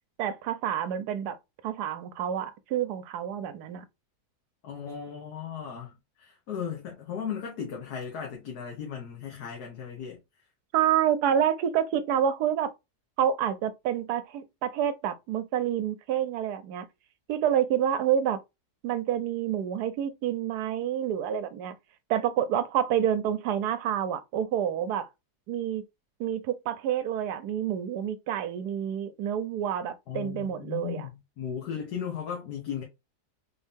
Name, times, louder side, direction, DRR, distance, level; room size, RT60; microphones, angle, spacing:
voice 1, 0.2-1.4 1.6-3.8 10.7-12.7 13.2-16.9 17.3-18.4 18.8-21.7 22.1-25.1 25.5-25.8 26.2-31.1, right 9 dB, 75° right, 1.1 m, -28 dB
voice 2, 4.6-10.2 30.1-32.8, left 8 dB, 70° left, 1.5 m, -36 dB
4.1 x 2.7 x 3.5 m
omnidirectional pair, 1.7 m